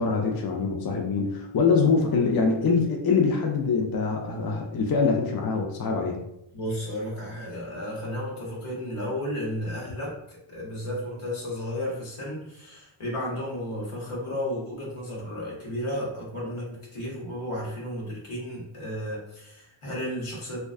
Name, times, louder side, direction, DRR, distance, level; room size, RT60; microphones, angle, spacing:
voice 1, 0.0-6.2, left 4 dB, 50° left, 2 dB, 0.4 m, -24 dB
voice 2, 6.5-20.6, equal, 85° left, -4 dB, 1.0 m, -33 dB
2.4 x 2.3 x 2.3 m, 0.81 s
wide cardioid pair, 50°, 50 cm